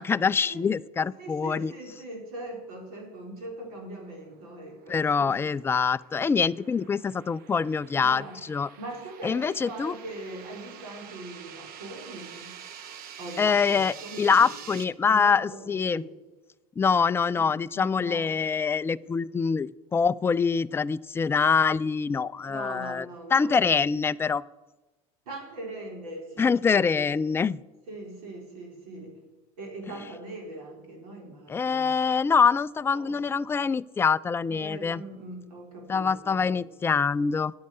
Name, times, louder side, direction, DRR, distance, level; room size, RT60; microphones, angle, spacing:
voice 1, 0.0-1.7 4.9-8.2 8.5-8.7 9.2-9.9 13.4-16.0 16.8-23.0 23.3-24.4 26.4-27.6 31.5-35.0 35.9-37.5, left 5 dB, 10° left, 16 dB, 0.3 m, -25 dB
voice 2, 1.2-5.6 8.0-8.4 8.8-12.5 13.2-14.8 15.1-16.1 17.3-17.5 17.7-18.3 22.4-23.9 25.3-27.1 27.9-29.2 29.6-31.9 32.9-33.2 34.5-36.4, right 2 dB, 70° right, 0 dB, 4.3 m, -41 dB
sound 1, 4.4-14.8, right 8 dB, 50° right, 1.1 m, -47 dB
9.4 x 8.7 x 8.4 m, 1.1 s
hypercardioid pair, 80°, 20 cm